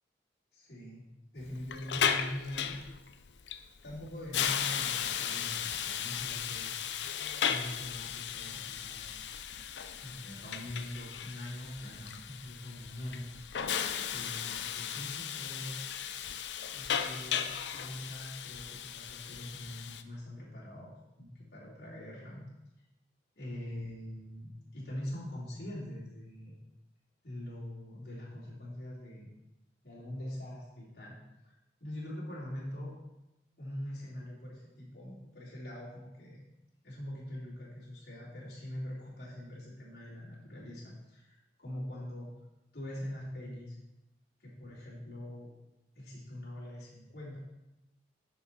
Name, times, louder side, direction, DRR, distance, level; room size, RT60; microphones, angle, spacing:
voice 1, 0.5-1.0 1.3-2.8 3.8-6.7 7.4-9.2 10.0-13.3 14.1-15.8 16.7-17.5 17.7-20.9 21.2-22.4 23.3-26.5 27.2-29.3 29.8-31.1 31.8-32.9 33.6-36.4 36.8-42.3 42.7-43.8 44.4-45.5 45.9-47.4, left 1 dB, 65° left, -8 dB, 3.2 m, -43 dB
Hiss, 1.4-20.0, left 8 dB, 85° left, 0.5 m, -36 dB
10.0 x 6.4 x 4.1 m, 0.94 s
head